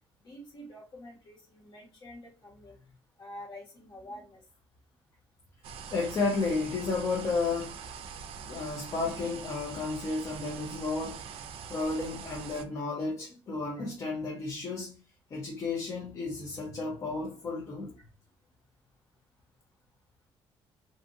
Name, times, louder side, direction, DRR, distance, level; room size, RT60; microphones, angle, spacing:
voice 1, 0.2-2.8 3.2-4.4 13.8-13.9, left 1 dB, 50° left, 1.4 m, -47 dB
sound 1, 5.6-12.6, right 6 dB, 70° right, 0.4 m, -43 dB
voice 2, 5.9-7.7 8.5-11.2 11.7-15.0 15.3-17.9, left 3 dB, 35° left, 0.6 m, -32 dB
2.6 x 2.5 x 2.6 m
cardioid pair, 160°, 10 cm